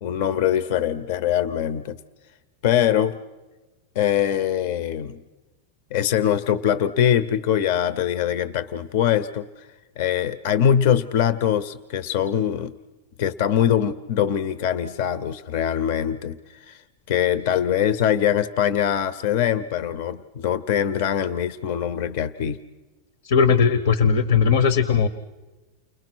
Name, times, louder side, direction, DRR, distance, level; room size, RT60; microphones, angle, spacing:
voice 1, 0.0-2.0 2.6-3.2 3.9-5.2 5.9-9.5 10.0-12.7 13.2-16.8 17.1-22.6, left 9 dB, 50° left, 16 dB, 0.7 m, -23 dB
voice 2, 23.2-25.1, left 6 dB, 70° left, 14 dB, 1.0 m, -18 dB
30.0 x 21.0 x 6.2 m, 1.2 s
supercardioid pair, 160°, 0 cm